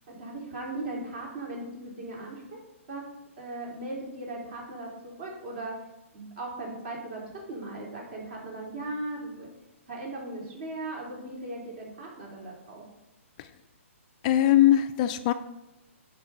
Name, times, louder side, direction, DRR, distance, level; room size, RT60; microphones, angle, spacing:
voice 1, 0.1-2.6 2.9-3.1 3.4-5.8 6.1-7.2 7.5-9.5 9.9-12.8, right 2 dB, 45° right, -2 dB, 3.6 m, -38 dB
voice 2, 14.2-15.3, left 12 dB, 30° left, 10 dB, 0.4 m, -21 dB
10.5 x 4.7 x 5.0 m, 0.96 s
hypercardioid pair, 145°, 8 cm